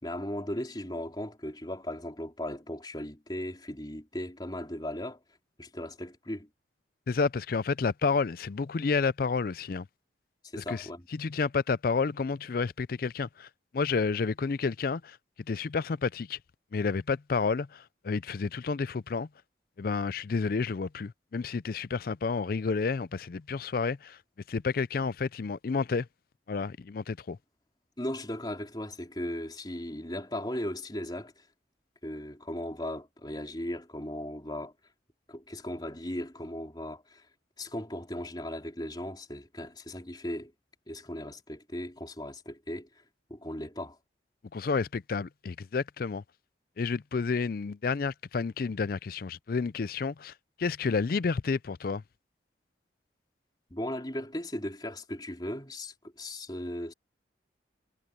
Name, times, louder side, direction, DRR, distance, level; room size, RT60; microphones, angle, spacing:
voice 1, 0.0-5.2 5.6-6.5 10.4-11.1 28.0-31.5 32.0-34.7 35.3-37.3 37.6-40.5 40.9-43.0 43.3-44.0 53.7-56.9, left 1 dB, 20° left, 3.9 m, -37 dB
voice 2, 7.1-9.9 10.6-13.5 13.7-15.2 15.5-16.4 16.7-19.3 19.8-24.2 24.5-26.1 26.5-27.4 44.5-46.2 46.8-50.3 50.6-52.0, left 4 dB, 50° left, 0.4 m, -30 dB
head